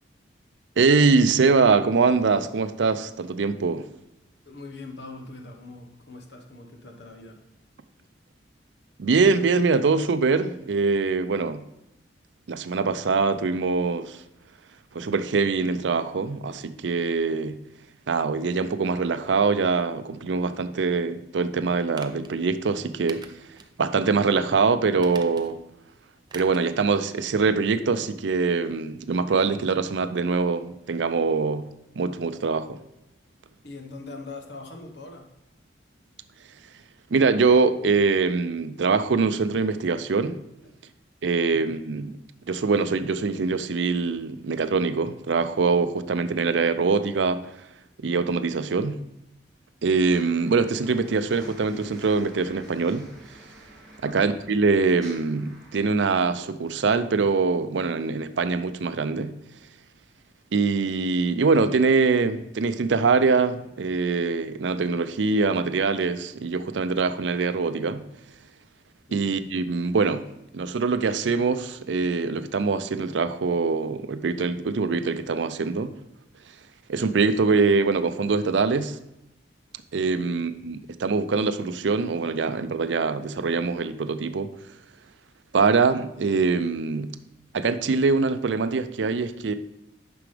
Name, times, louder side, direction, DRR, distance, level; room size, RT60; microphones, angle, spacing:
voice 1, 0.8-3.8 9.0-11.6 12.5-14.2 14.9-17.6 18.1-23.2 23.8-25.6 26.3-31.7 32.0-32.8 37.1-40.4 41.2-42.2 42.5-47.4 48.0-49.0 49.8-53.1 54.0-59.3 60.5-68.0 69.1-70.2 70.5-75.9 76.9-79.0 79.9-84.5 85.5-87.1 87.5-89.5, right 4 dB, 80° right, 11 dB, 0.5 m, -23 dB
voice 2, 4.4-7.4 33.6-35.3 40.6-40.7 41.5-41.8 54.0-54.3 69.1-69.3 80.2-80.4, left 3 dB, 70° left, 4 dB, 1.2 m, -42 dB
sound 1, 21.9-22.3 23.1-23.7 24.1-24.2 24.9-25.7 26.3-26.7 27.0-27.1, right 5 dB, 25° right, 0.5 m, -44 dB
sound 2, 50.1-55.9, right 1 dB, 5° left, 2.5 m, -49 dB
9.5 x 6.0 x 3.3 m, 0.89 s
head